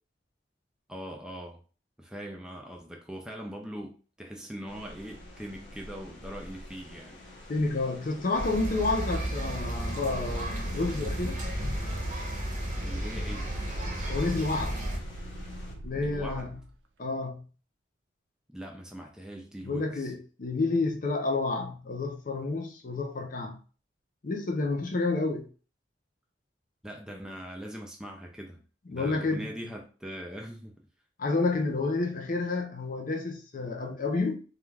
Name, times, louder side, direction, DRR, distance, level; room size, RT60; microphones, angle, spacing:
voice 1, 0.9-1.6 2.0-7.2 12.8-13.6 16.0-16.5 18.5-20.1 26.8-28.6 28.9-30.9, equal, 5° right, 0.3 m, -41 dB
sound 1, 4.7-15.7, left 1 dB, 85° left, 0.8 m, -47 dB
voice 2, 7.5-11.4 14.1-14.8 15.8-16.6 17.0-17.5 19.6-23.6 24.2-25.5 28.9-29.5 31.2-34.4, left 3 dB, 50° left, 0.5 m, -30 dB
sound 2, 8.3-15.0, right 1 dB, 45° right, 0.7 m, -33 dB
sound 3, 11.4-11.5 11.9-12.5 12.8-16.7, right 1 dB, 75° right, 0.4 m, -42 dB
2.3 x 2.3 x 3.1 m
head